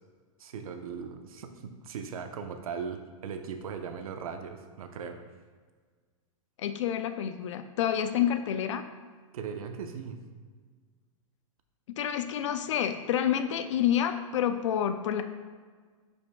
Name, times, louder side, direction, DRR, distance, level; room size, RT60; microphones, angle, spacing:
voice 1, 0.4-5.2 9.3-10.2, right 6 dB, 85° right, 6 dB, 0.8 m, -38 dB
voice 2, 6.6-8.8 11.9-15.2, left 9 dB, 60° left, 9 dB, 0.4 m, -28 dB
9.1 x 5.2 x 2.2 m, 1.5 s
supercardioid pair, 165°, 18 cm